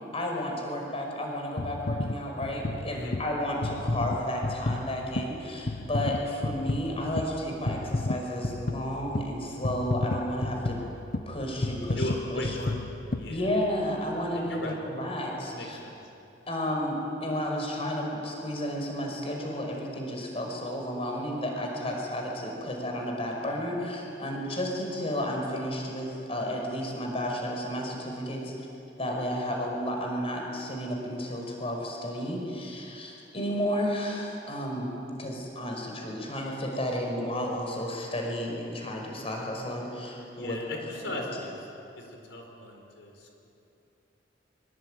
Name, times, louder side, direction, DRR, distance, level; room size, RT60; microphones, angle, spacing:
voice 1, 0.1-10.8 11.3-12.6 13.3-15.8 16.5-28.5 29.0-40.6 41.0-41.1, equal, 35° left, 1 dB, 5.6 m, -32 dB
sound 1, 1.6-14.0 14.5-14.7, left 2 dB, 50° left, 0.9 m, -33 dB
voice 2, 11.9-12.8 13.2-13.4 14.3-14.8 15.5-16.0 40.3-41.6 42.0-43.1, left 1 dB, 80° left, 2 dB, 4.7 m, -37 dB
25.0 x 23.5 x 9.2 m, 2.8 s
head